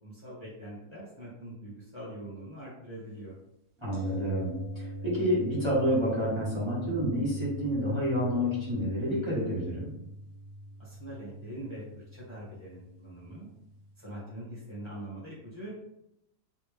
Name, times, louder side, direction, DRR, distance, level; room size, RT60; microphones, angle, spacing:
voice 1, 0.0-3.3 10.8-13.5 14.0-15.7, right 1 dB, 20° left, -8 dB, 1.2 m, -43 dB
voice 2, 3.8-9.9, equal, 20° right, -7 dB, 1.2 m, -29 dB
sound 1, 3.9-13.8 14.1-14.2, right 1 dB, 60° right, 0.8 m, -41 dB
3.1 x 2.9 x 3.4 m, 0.81 s
omnidirectional pair, 1.6 m